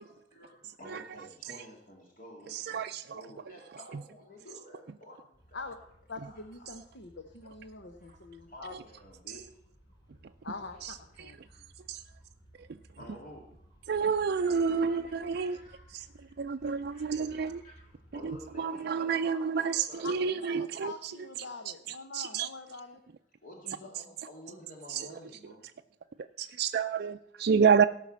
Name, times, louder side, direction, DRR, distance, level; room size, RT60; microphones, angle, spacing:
voice 1, 0.0-5.9 6.2-6.8 8.0-8.2 8.5-9.5 10.7-10.8 11.5-11.7 13.0-13.5 14.2-16.3 16.6-20.9 23.4-25.6, left 1 dB, 50° left, -1 dB, 2.2 m, -52 dB
voice 2, 2.5-3.2 10.8-11.3 11.9-12.0 12.6-12.7 13.9-15.6 15.9-16.1 16.4-17.6 18.2-21.1 21.9-22.5 24.9-25.1 26.2-27.9, right 6 dB, 60° right, 6 dB, 0.4 m, -29 dB
sound 1, 5.3-18.6, right 1 dB, 25° left, 4.7 m, -59 dB
voice 3, 6.1-8.7 10.4-11.4 20.0-23.0, left 3 dB, 75° left, 7 dB, 1.0 m, -44 dB
17.0 x 5.9 x 7.4 m, 0.72 s
head